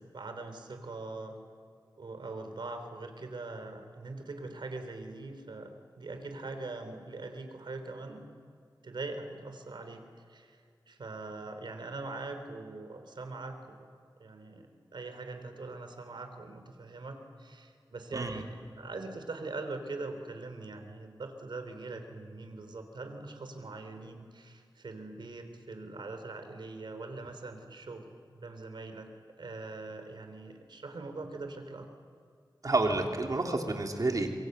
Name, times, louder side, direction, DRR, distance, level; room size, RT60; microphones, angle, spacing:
voice 1, 0.0-1.4 2.0-8.2 8.8-10.0 10.3-10.6 10.9-13.9 14.2-29.1 29.4-31.9, right 3 dB, 75° right, 7 dB, 3.4 m, -42 dB
voice 2, 18.1-18.4 32.6-34.3, right 2 dB, 50° right, 3 dB, 3.1 m, -29 dB
25.5 x 24.0 x 8.0 m, 2.3 s
wide cardioid pair, 90°, 8 cm